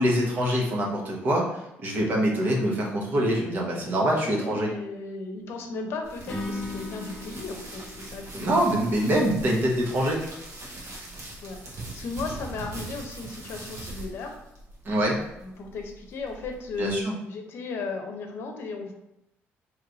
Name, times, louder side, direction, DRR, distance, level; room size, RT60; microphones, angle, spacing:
voice 1, 0.0-1.5 1.8-4.7 8.3-10.2 14.8-15.2 16.8-17.1, equal, 45° right, -2 dB, 1.1 m, -24 dB
voice 2, 4.2-8.6 8.9-9.0 11.4-11.6 11.9-14.4 15.4-18.9, left 4 dB, 60° left, 3 dB, 0.7 m, -36 dB
sound 1, 6.0-17.0, right 1 dB, 75° right, 1.3 m, -42 dB
Acoustic guitar / Strum, 6.3-9.5, left 2 dB, 10° left, 1.2 m, -38 dB
3.2 x 3.1 x 3.9 m, 0.84 s
cardioid pair, 135°, 5 cm